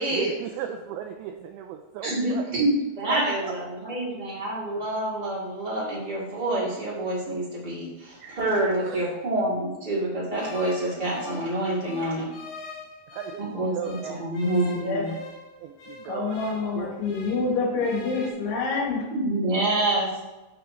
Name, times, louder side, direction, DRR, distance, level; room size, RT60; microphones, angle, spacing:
voice 1, 0.1-2.5 3.0-3.9 8.2-8.4 8.8-9.1 13.1-14.3 15.6-16.5 16.7-16.9, right 8 dB, 85° right, 2.5 m, -36 dB
voice 2, 2.0-12.3 13.4-15.1 19.1-20.2, right 1 dB, 35° right, 1.7 m, -27 dB
sound 1, 10.3-13.5 13.8-17.5 17.8-18.3, left 4 dB, 60° left, 5.1 m, -44 dB
voice 3, 14.7-15.1 16.0-19.0, left 4 dB, 75° left, 4.3 m, -27 dB
13.5 x 5.0 x 3.0 m
omnidirectional pair, 5.5 m